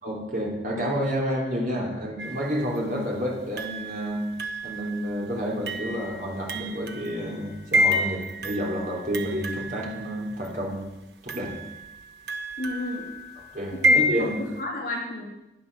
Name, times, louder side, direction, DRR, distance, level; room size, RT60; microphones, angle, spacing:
voice 1, 0.0-4.3 4.6-10.9 11.2-11.6 13.5-14.3, equal, 45° right, -2 dB, 3.2 m, -29 dB
sound 1, 2.2-2.8 3.6-10.5 11.3-14.6, equal, 70° right, 1.1 m, -29 dB
voice 2, 12.6-13.1 13.7-14.0 14.3-15.3, left 1 dB, 55° left, -2 dB, 3.3 m, -32 dB
13.0 x 9.7 x 6.7 m, 0.97 s
head